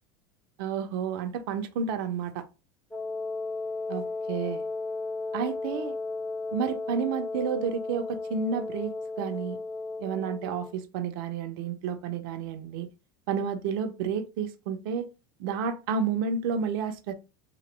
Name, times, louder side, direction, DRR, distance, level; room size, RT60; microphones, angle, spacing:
voice 1, 0.6-2.4 3.9-4.6 5.3-5.9 6.5-9.6 10.0-12.9 13.3-15.1 15.4-17.1, right 6 dB, 70° right, 0.6 m, -31 dB
Wind instrument woodwind instrument, 2.9-10.8, left 3 dB, 5° left, 0.7 m, -34 dB
2.9 x 2.6 x 3.1 m
supercardioid pair, 105°, 12 cm